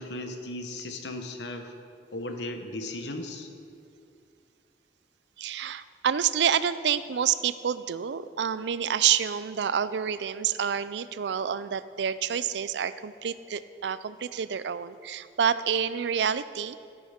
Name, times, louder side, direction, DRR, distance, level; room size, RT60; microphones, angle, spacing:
voice 1, 0.0-1.7 2.1-3.5, left 1 dB, 85° left, 6 dB, 1.1 m, -36 dB
voice 2, 5.4-16.8, right 8 dB, 80° right, 15 dB, 0.4 m, -28 dB
13.0 x 6.5 x 5.8 m, 2.5 s
head